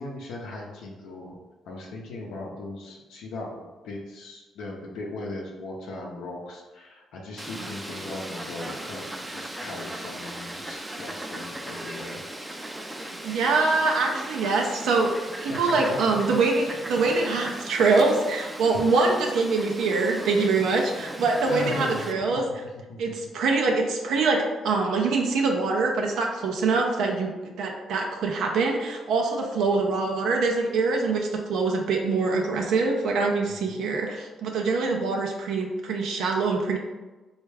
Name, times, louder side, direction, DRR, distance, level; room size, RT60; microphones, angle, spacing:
voice 1, 0.0-1.4 1.7-12.2 15.5-16.2 21.4-22.4 22.9-23.3 33.4-33.8, left 2 dB, 85° left, -2 dB, 0.6 m, -38 dB
Fowl, 7.4-22.1, right 1 dB, 15° right, 0.4 m, -38 dB
voice 2, 13.2-22.6 23.0-36.8, right 3 dB, 80° right, 1 dB, 0.4 m, -24 dB
3.4 x 2.3 x 3.2 m, 1.2 s
cardioid pair, 90°, 0 cm